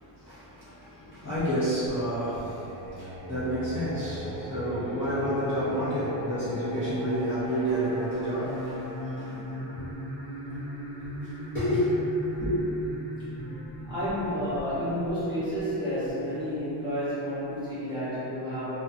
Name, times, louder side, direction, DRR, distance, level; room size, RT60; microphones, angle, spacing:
voice 1, 0.2-2.6 2.9-9.9 10.5-10.6 11.2-11.3 11.5-11.9 12.3-12.6, equal, 25° left, -14 dB, 0.5 m, -30 dB
Singing, 1.4-16.1, equal, 40° right, 1.0 m, -37 dB
voice 2, 13.4-18.8, equal, 10° right, -15 dB, 0.6 m, -31 dB
2.4 x 2.2 x 2.4 m, 2.9 s
cardioid pair, 180°, 47 cm